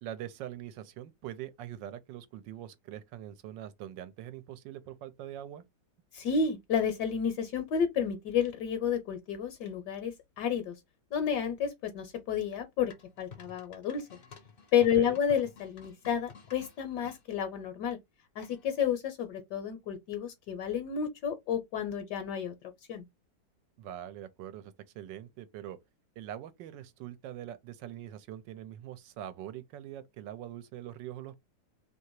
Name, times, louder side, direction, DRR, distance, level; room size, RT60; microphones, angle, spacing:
voice 1, 0.0-5.6 14.9-15.2 23.8-25.8 26.2-31.5, right 11 dB, 85° right, 1.3 m, -43 dB
voice 2, 6.1-10.8 11.1-14.1 14.7-18.0 18.4-22.5 22.9-23.0, left 7 dB, 70° left, 1.2 m, -31 dB
sound 1, 12.9-17.2 18.4-18.8, left 6 dB, 50° left, 0.6 m, -53 dB
3.1 x 2.8 x 4.5 m
omnidirectional pair, 2.0 m